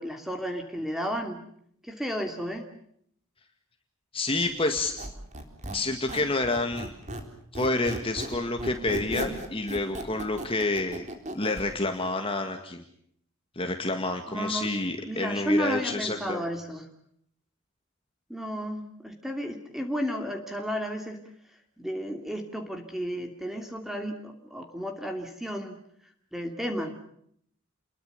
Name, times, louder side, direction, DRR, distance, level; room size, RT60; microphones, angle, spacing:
voice 1, 0.0-1.4 1.9-2.7 14.3-14.7 15.1-16.8 18.3-21.2 21.8-25.8 26.3-26.9, equal, ahead, 5 dB, 2.7 m, -32 dB
voice 2, 4.1-4.9 5.7-6.9 7.5-11.1 11.3-12.8 13.6-16.4, left 2 dB, 25° left, 5 dB, 2.0 m, -28 dB
Squeak, 4.8-7.3 7.5-11.7, right 1 dB, 35° right, 4.0 m, -36 dB
29.0 x 21.5 x 6.8 m, 0.68 s
head